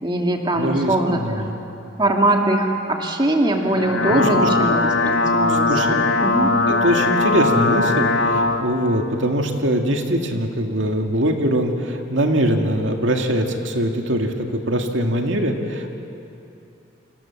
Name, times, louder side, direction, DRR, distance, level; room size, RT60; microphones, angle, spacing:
voice 1, 0.0-1.4 2.0-4.8 5.0-6.5, right 1 dB, 25° right, 2 dB, 2.1 m, -21 dB
voice 2, 0.6-1.5 4.1-4.7 5.5-6.0 6.7-15.9, equal, 75° right, 3 dB, 2.2 m, -22 dB
sound 1, 3.7-8.6, left 3 dB, 75° left, 1.4 m, -19 dB
28.5 x 26.5 x 7.3 m, 2.7 s
head